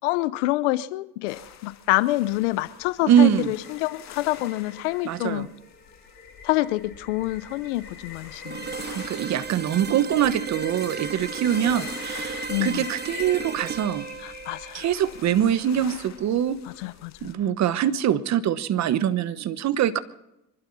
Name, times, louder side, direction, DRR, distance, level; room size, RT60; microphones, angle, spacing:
voice 1, 0.0-5.5 6.4-8.7 12.5-12.8 14.2-14.8 16.8-17.3, left 18 dB, 90° left, 0.7 m, -27 dB
sound 1, 1.3-17.3, left 9 dB, 50° left, 2.0 m, -46 dB
sound 2, 2.8-15.8, left 4 dB, 25° left, 6.7 m, -44 dB
voice 2, 3.1-3.5 5.0-5.5 8.9-14.1 14.7-16.6 17.2-20.0, right 10 dB, 50° right, 1.2 m, -23 dB
sound 3, 8.5-16.3, right 6 dB, 30° right, 1.0 m, -36 dB
26.0 x 12.0 x 4.1 m
supercardioid pair, 85°, 35 cm